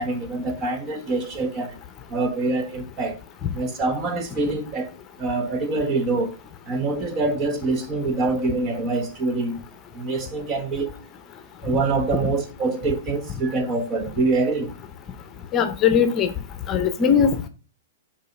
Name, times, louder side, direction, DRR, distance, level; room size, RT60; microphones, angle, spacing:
voice 1, 0.0-1.8 2.1-3.2 3.5-4.9 5.2-6.3 6.7-9.6 9.9-11.0 11.6-14.7, right 3 dB, 35° right, 1.3 m, -25 dB
voice 2, 15.5-16.3 16.7-17.5, left 7 dB, 30° left, 0.8 m, -19 dB
5.3 x 4.3 x 5.3 m
hypercardioid pair, 130°, 0 cm